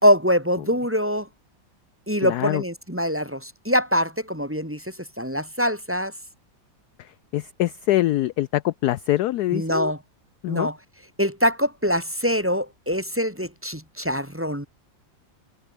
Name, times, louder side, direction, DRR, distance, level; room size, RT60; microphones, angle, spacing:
voice 1, 0.0-1.3 2.1-6.1 9.5-10.0 10.5-10.8 11.2-14.7, equal, 5° right, 2.3 m, -23 dB
voice 2, 2.2-2.6 7.0-9.9 10.4-10.7, left 15 dB, 70° left, 0.9 m, -24 dB
omnidirectional pair, 2.1 m